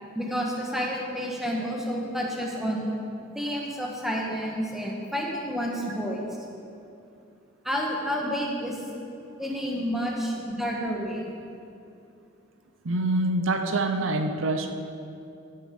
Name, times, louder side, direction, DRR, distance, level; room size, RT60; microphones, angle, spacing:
voice 1, 0.1-2.9 3.3-6.3 7.6-8.8 9.4-11.2, equal, ahead, -2 dB, 1.5 m, -30 dB
voice 2, 12.8-14.7, right 2 dB, 70° right, 6 dB, 0.7 m, -25 dB
14.5 x 8.2 x 5.2 m, 2.6 s
head